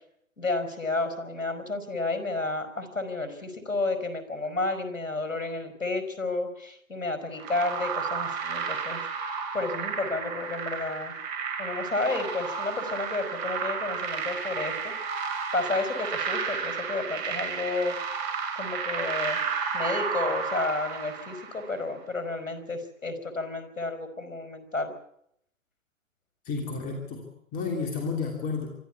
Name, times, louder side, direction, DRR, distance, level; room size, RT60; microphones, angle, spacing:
voice 1, 0.4-11.1 11.6-14.9 15.5-18.0 18.6-19.4 19.7-24.9, left 2 dB, 85° left, 9 dB, 5.1 m, -31 dB
sound 1, 7.4-21.8, right 6 dB, 35° right, 3.0 m, -32 dB
voice 2, 26.5-28.7, left 4 dB, 20° left, 3 dB, 2.9 m, -32 dB
24.5 x 13.0 x 8.2 m, 0.72 s
figure-of-eight pair, 135°, 40 cm